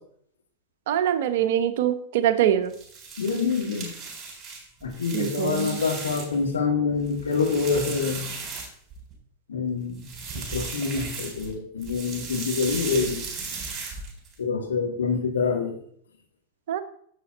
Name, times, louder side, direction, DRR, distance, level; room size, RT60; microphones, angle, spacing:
voice 1, 0.9-2.7 5.1-5.8 16.7-16.8, right 10 dB, 55° right, 10 dB, 1.0 m, -23 dB
sound 1, 2.6-6.5 6.9-9.1 9.9-11.5 11.8-14.3, right 4 dB, 25° right, 4.2 m, -36 dB
voice 2, 3.2-3.9 4.8-8.3 9.5-13.2 14.4-15.7, left 5 dB, 70° left, 1 dB, 2.5 m, -26 dB
11.0 x 7.6 x 4.1 m, 0.62 s
figure-of-eight pair, 90°, 0 cm